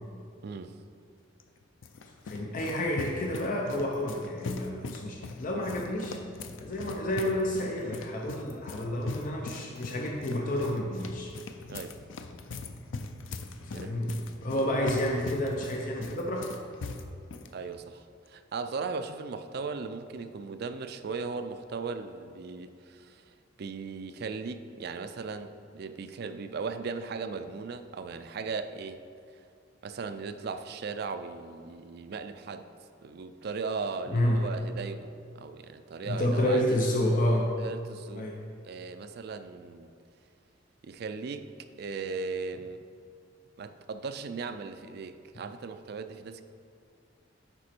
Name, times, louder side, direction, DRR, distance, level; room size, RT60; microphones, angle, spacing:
voice 1, 0.4-0.8 11.7-12.0 13.7-14.0 17.5-23.2 23.6-29.0 29.8-32.7 33.0-36.6 37.6-38.3 38.6-39.9 40.8-41.5 41.8-42.8 43.6-46.4, right 4 dB, 55° right, 9 dB, 0.4 m, -37 dB
sound 1, 1.4-17.5, left 3 dB, 85° left, 0.5 m, -41 dB
voice 2, 2.3-6.2 6.6-11.3 13.6-14.1 14.4-16.5 34.1-34.5 36.0-37.5 38.1-38.4, left 1 dB, 45° left, 0 dB, 0.6 m, -29 dB
9.8 x 4.1 x 4.4 m, 2.4 s
head